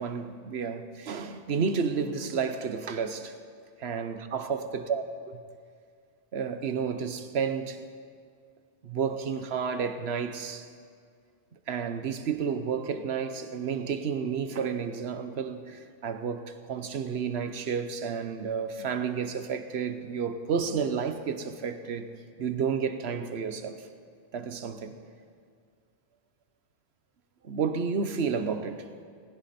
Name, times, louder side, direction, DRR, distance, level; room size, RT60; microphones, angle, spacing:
voice 1, 0.0-3.3 3.8-5.4 6.3-7.8 8.8-10.7 11.7-22.1 22.4-23.9 24.3-24.9 27.4-29.1, right 6 dB, 80° right, 1.2 m, -31 dB
19.0 x 16.5 x 4.3 m
omnidirectional pair, 1.1 m